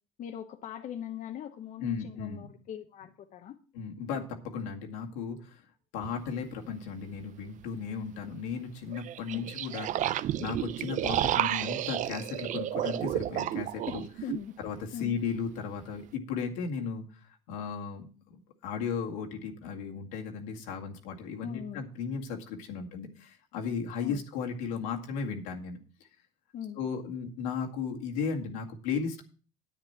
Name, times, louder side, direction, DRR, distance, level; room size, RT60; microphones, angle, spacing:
voice 1, 0.2-3.6 9.3-9.5 14.2-14.5 14.9-15.2 21.4-21.8 24.0-24.2 26.5-26.8, left 9 dB, 55° left, 4 dB, 1.0 m, -40 dB
voice 2, 1.8-2.5 3.7-5.6 5.9-14.0 14.6-17.0 17.5-25.8 26.7-29.2, left 6 dB, 85° left, 1 dB, 2.1 m, -35 dB
sound 1, 6.0-6.1 8.9-14.4, right 12 dB, 55° right, 0.5 m, -31 dB
10.0 x 9.2 x 4.4 m, 0.39 s
supercardioid pair, 85°, 16 cm